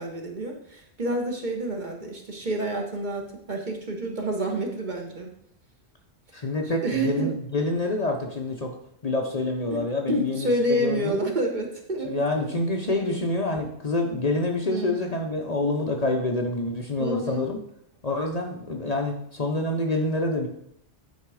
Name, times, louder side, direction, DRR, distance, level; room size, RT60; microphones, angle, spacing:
voice 1, 0.0-5.3 6.8-7.3 9.7-12.5 14.7-15.0 17.0-17.4, right 1 dB, 45° right, 2 dB, 1.1 m, -28 dB
voice 2, 6.3-8.8 9.0-11.2 12.0-17.6 18.0-20.5, left 2 dB, 40° left, 1 dB, 0.8 m, -27 dB
9.4 x 3.7 x 4.8 m, 0.71 s
omnidirectional pair, 1.2 m